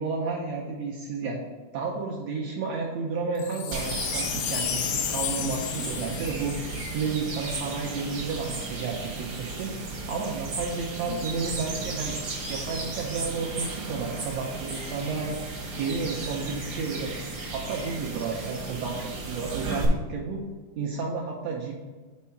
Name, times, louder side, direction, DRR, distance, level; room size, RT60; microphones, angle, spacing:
voice 1, 0.0-1.4 1.7-6.6 6.9-9.7 10.1-12.1 12.5-15.4 15.8-20.4 20.8-21.7, right 4 dB, 90° right, -1 dB, 1.4 m, -32 dB
Wind chime, 3.4-7.7 8.3-8.4, left 10 dB, 80° left, 2.2 m, -33 dB
sound 1, 3.7-19.8, right 3 dB, 65° right, 1.0 m, -35 dB
5.4 x 4.7 x 5.6 m, 1.3 s
omnidirectional pair, 3.9 m